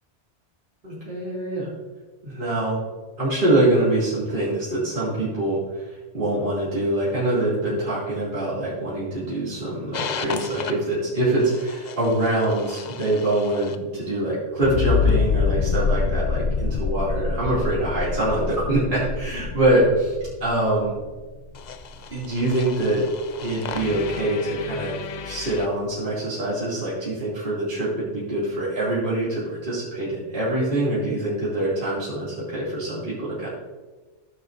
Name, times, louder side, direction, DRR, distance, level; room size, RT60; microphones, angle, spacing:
voice 1, 0.8-1.7 2.2-2.8 3.2-19.8 20.1-20.9 22.1-23.0 23.4-33.5, right 1 dB, 45° right, -9 dB, 2.8 m, -24 dB
sound 1, 9.9-10.7 11.4-13.7 14.6-25.7, left 5 dB, 50° left, 0.5 m, -28 dB
15.0 x 6.5 x 2.6 m, 1.3 s
omnidirectional pair, 1.2 m